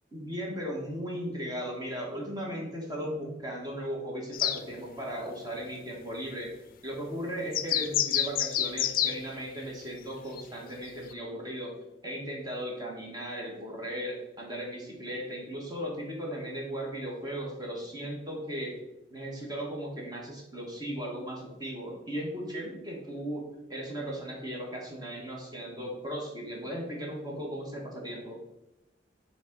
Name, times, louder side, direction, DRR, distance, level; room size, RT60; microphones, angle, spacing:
voice 1, 0.1-6.5 6.8-11.7 12.0-18.8 19.1-28.4, equal, 20° right, -2 dB, 1.7 m, -37 dB
sound 1, 4.3-4.6 7.5-9.2 10.4-10.5 11.1-11.2, left 10 dB, 50° left, 0.4 m, -27 dB
6.3 x 4.1 x 4.7 m, 0.91 s
head